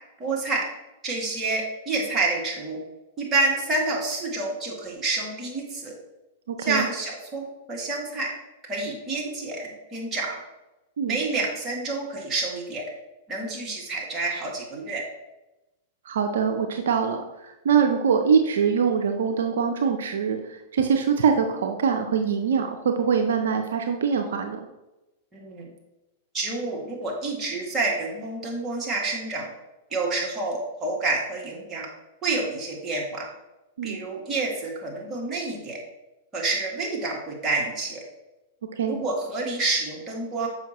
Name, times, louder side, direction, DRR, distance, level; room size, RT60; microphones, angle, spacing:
voice 1, 0.2-0.6 1.0-2.8 3.2-5.9 6.6-8.3 8.6-10.4 11.1-12.9 13.3-15.0 25.3-25.7 26.3-29.5 29.9-31.9 32.2-33.2 33.8-35.8 36.3-38.0 38.9-40.5, right 3 dB, 25° right, -2 dB, 2.0 m, -28 dB
voice 2, 6.5-6.8 11.0-11.2 16.1-24.6 33.8-34.0 38.7-39.0, right 6 dB, 75° right, 5 dB, 0.6 m, -23 dB
7.0 x 5.5 x 3.0 m, 0.99 s
hypercardioid pair, 105°, 0 cm